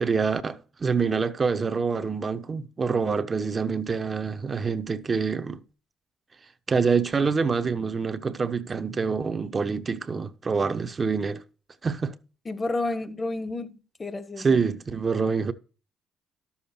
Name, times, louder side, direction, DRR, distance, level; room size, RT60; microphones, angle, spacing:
voice 1, 0.0-5.6 6.7-11.4 11.8-12.1 14.4-15.5, right 5 dB, 40° right, 0.9 m, -26 dB
voice 2, 12.4-13.7 14.0-14.5, left 2 dB, 30° left, 1.4 m, -30 dB
12.0 x 7.3 x 4.4 m
hypercardioid pair, 55°, 0 cm